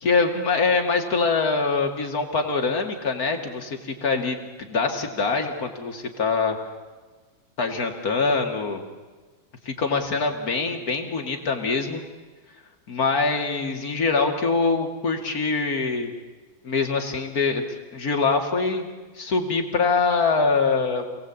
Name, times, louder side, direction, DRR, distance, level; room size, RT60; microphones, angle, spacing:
voice 1, 0.0-6.6 7.6-8.8 9.6-12.0 12.9-16.1 16.6-17.7 17.9-18.9 19.1-21.1, left 4 dB, 50° left, 4 dB, 2.9 m, -24 dB
27.5 x 18.5 x 8.6 m, 1.3 s
omnidirectional pair, 2.2 m